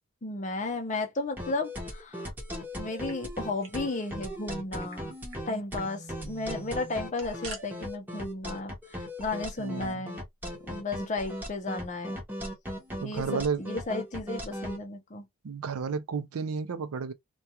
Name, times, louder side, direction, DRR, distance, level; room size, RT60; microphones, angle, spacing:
voice 1, 0.2-2.3 2.8-5.1 5.5-10.2 10.6-12.2 13.0-15.3, left 2 dB, 35° left, 0.6 m, -34 dB
sound 1, 1.4-14.8, equal, 10° right, 0.9 m, -38 dB
sound 2, 2.8-3.8 4.1-4.2 4.5-5.0 5.3-5.4 5.7-5.9 6.9-7.6, right 3 dB, 60° right, 0.8 m, -47 dB
voice 2, 9.6-10.1 13.0-13.6 15.4-17.1, right 5 dB, 80° right, 0.5 m, -32 dB
2.3 x 2.3 x 2.7 m
head